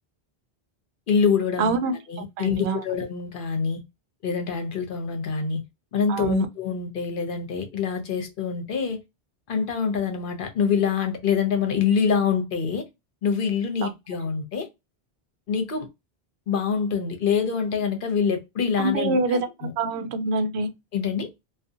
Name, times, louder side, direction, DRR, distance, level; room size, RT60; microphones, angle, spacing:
voice 1, 1.1-1.8 2.1-3.8 4.2-5.6 5.9-9.0 9.5-12.8 13.2-14.7 15.5-15.9 16.5-19.7 20.9-21.3, left 6 dB, 60° left, 0.8 m, -25 dB
voice 2, 1.6-2.8 6.1-6.5 13.8-13.9 18.8-20.7, right 3 dB, 90° right, 0.8 m, -26 dB
2.5 x 2.3 x 2.6 m
omnidirectional pair, 1.1 m